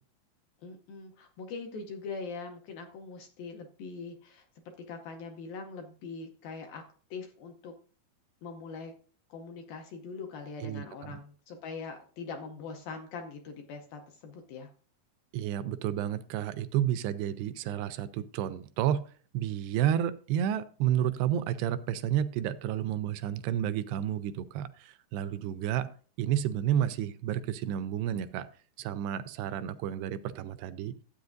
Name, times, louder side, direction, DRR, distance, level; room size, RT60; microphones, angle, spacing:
voice 1, 0.6-4.5 4.8-6.8 7.1-7.7 8.4-8.9 9.3-14.7, left 4 dB, 75° left, 4 dB, 2.2 m, -42 dB
voice 2, 10.6-11.2 15.3-19.0 19.3-25.9 26.2-28.5 28.8-30.9, right 10 dB, 85° right, 13 dB, 2.4 m, -31 dB
13.0 x 8.5 x 2.6 m, 0.41 s
omnidirectional pair, 5.0 m